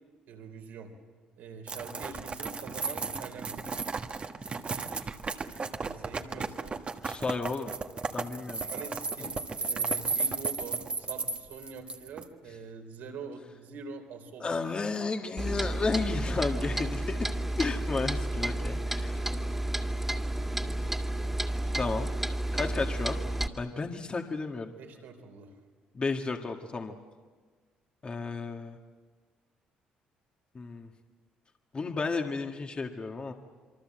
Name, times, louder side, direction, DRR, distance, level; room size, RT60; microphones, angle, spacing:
voice 1, 0.3-0.9 1.4-3.6 5.8-6.7 8.6-14.5 16.3-16.9 17.2-17.3 24.8-25.6, right 4 dB, 75° right, 4 dB, 3.7 m, -45 dB
sound 1, 1.7-12.2, right 4 dB, 40° right, 1.5 m, -34 dB
voice 2, 7.0-7.7 8.1-8.6 14.4-17.3 17.6-19.1 21.7-22.1 22.5-23.2 23.6-24.7 25.9-26.9 28.0-28.8 30.5-30.9 31.7-33.3, left 4 dB, 35° left, 4 dB, 1.9 m, -32 dB
Clock, 15.4-23.5, right 1 dB, 10° right, 2.3 m, -31 dB
27.5 x 23.5 x 7.7 m, 1.5 s
supercardioid pair, 75°, 3 cm